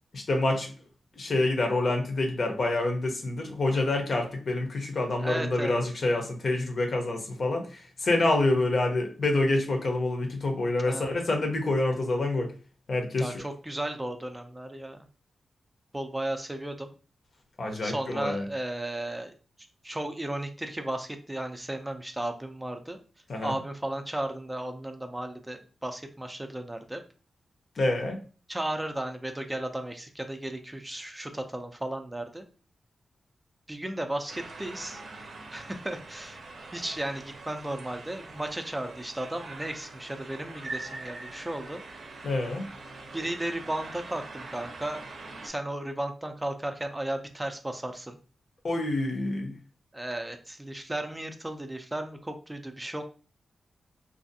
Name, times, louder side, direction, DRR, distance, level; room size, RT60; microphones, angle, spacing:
voice 1, 0.1-0.7 1.2-12.5 12.9-13.4 17.6-18.5 23.3-23.6 27.8-28.2 42.2-42.7 48.6-49.5, left 2 dB, 60° left, 3 dB, 0.7 m, -27 dB
voice 2, 5.2-5.7 10.8-11.1 13.2-15.0 15.9-16.9 17.8-19.3 19.8-23.0 23.4-27.0 28.5-32.5 33.7-35.0 35.5-36.4 36.7-41.8 43.1-45.1 45.4-48.2 49.9-53.0, right 1 dB, 15° right, 6 dB, 0.4 m, -34 dB
sound 1, 34.3-45.5, right 3 dB, 70° right, 0.6 m, -43 dB
2.6 x 2.4 x 2.6 m, 0.37 s
cardioid pair, 75°, 0 cm